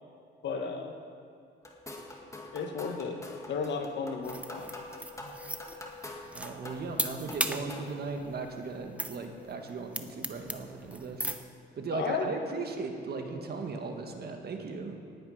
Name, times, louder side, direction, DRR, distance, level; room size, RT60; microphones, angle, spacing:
voice 1, 0.4-0.9 2.5-3.2 3.5-4.7 11.9-12.3, left 4 dB, 65° left, 4 dB, 1.4 m, -34 dB
sound 1, 1.6-8.0, left 2 dB, 15° left, 2.0 m, -45 dB
sound 2, 4.2-11.5, right 1 dB, 5° right, 0.8 m, -38 dB
voice 2, 6.3-11.3 11.8-15.0, right 4 dB, 55° right, 4 dB, 1.8 m, -37 dB
19.0 x 8.6 x 5.8 m, 2.4 s
cardioid pair, 90°, 20 cm